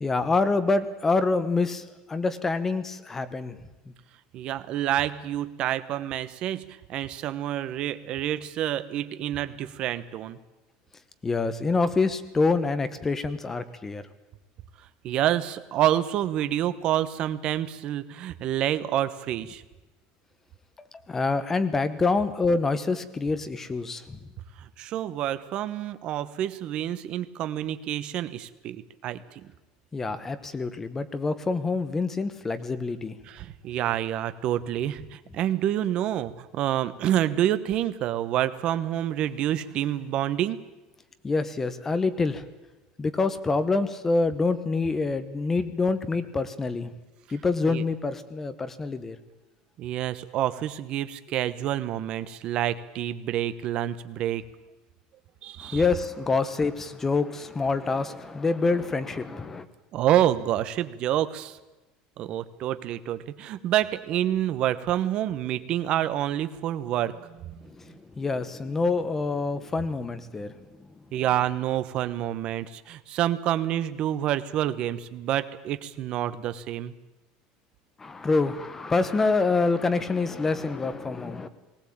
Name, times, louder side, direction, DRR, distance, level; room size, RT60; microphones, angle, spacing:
voice 1, 0.0-3.6 3.9-4.0 11.2-14.0 20.8-24.2 29.9-33.1 41.2-42.4 43.0-46.9 47.3-49.2 55.6-59.7 67.6-70.9 78.0-81.5, left 3 dB, 15° left, 12 dB, 1.0 m, -26 dB
voice 2, 4.3-10.4 15.0-19.6 24.6-29.4 33.3-40.6 47.7-47.8 49.8-54.4 55.4-55.8 59.9-61.6 62.2-67.6 71.1-76.9, right 12 dB, 40° right, 13 dB, 1.0 m, -28 dB
19.5 x 18.0 x 8.7 m, 1.1 s
cardioid pair, 165°, 2 cm